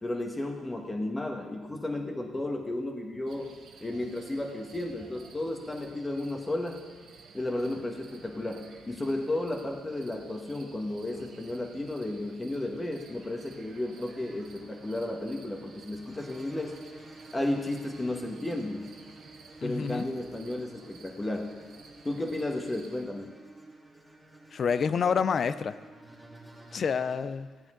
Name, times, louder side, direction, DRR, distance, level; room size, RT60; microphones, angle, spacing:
voice 1, 0.0-3.5 3.8-6.8 7.3-16.8 17.3-18.9 19.6-21.6 22.0-23.4, left 1 dB, 15° left, 3 dB, 1.4 m, -33 dB
sound 1, 3.3-23.0, right 4 dB, 70° right, 1.3 m, -53 dB
sound 2, 13.2-27.2, right 2 dB, ahead, 2.0 m, -51 dB
voice 2, 19.6-20.0 24.5-25.8 26.7-27.5, left 6 dB, 50° left, 14 dB, 0.4 m, -28 dB
13.5 x 8.9 x 3.8 m, 1.4 s
cardioid pair, 90°, 0 cm